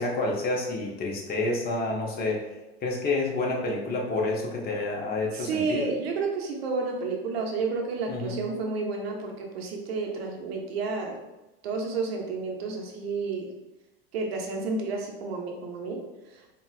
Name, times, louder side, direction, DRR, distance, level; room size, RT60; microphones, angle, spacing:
voice 1, 0.0-2.4 2.8-5.8 8.1-8.4, left 2 dB, 30° left, -1 dB, 0.9 m, -29 dB
voice 2, 5.3-11.2 11.6-13.5 14.1-16.0, right 4 dB, 80° right, 1 dB, 0.7 m, -31 dB
4.0 x 2.3 x 2.5 m, 1.0 s
hypercardioid pair, 100°, 30 cm